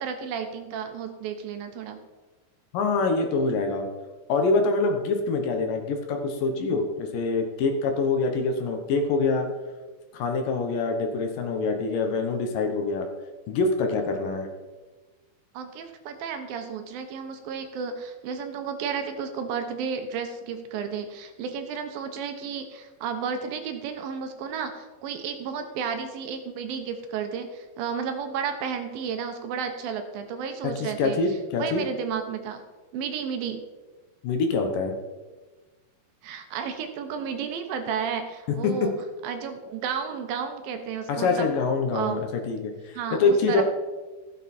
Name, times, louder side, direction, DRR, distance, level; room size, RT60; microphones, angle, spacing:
voice 1, 0.0-2.0 15.5-31.2 31.6-32.6 32.9-33.6 36.2-38.9 39.2-41.5 41.9-42.2 42.9-43.6, right 6 dB, 75° right, 6 dB, 2.5 m, -32 dB
voice 2, 2.7-3.9 4.3-9.5 10.1-13.1 13.5-14.5 30.8-31.8 34.2-34.9 38.6-38.7 41.1-43.6, left 3 dB, 70° left, 4 dB, 2.4 m, -25 dB
15.0 x 7.4 x 4.3 m, 1.2 s
omnidirectional pair, 4.5 m